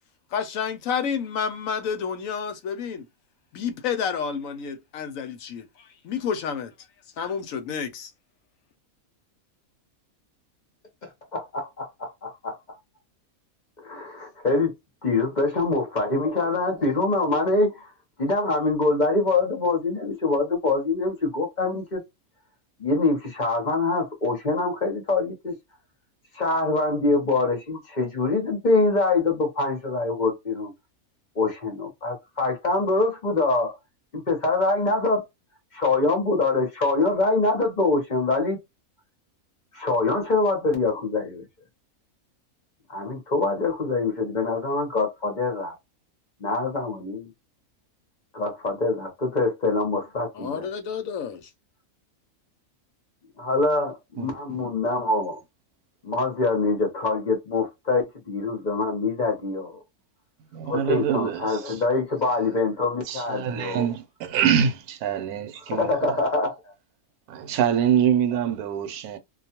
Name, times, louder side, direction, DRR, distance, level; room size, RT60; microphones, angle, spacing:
voice 1, 0.3-3.0 3.5-5.7 6.0-6.7 7.2-8.1 50.3-51.5, left 7 dB, 75° left, 0.9 m, -29 dB
voice 2, 11.3-12.6 13.8-14.7 15.0-17.9 18.2-22.0 22.8-25.5 26.3-30.7 31.4-33.8 34.1-35.2 35.7-38.6 39.7-41.4 42.9-45.7 46.4-47.3 48.3-50.7 53.4-55.4 56.0-59.8 60.7-63.8 65.7-66.7, left 3 dB, 40° left, 0.8 m, -24 dB
voice 3, 54.2-54.6 60.5-61.8 63.1-66.2 67.3-69.2, right 9 dB, 85° right, 1.1 m, -25 dB
2.4 x 2.3 x 2.8 m
omnidirectional pair, 1.5 m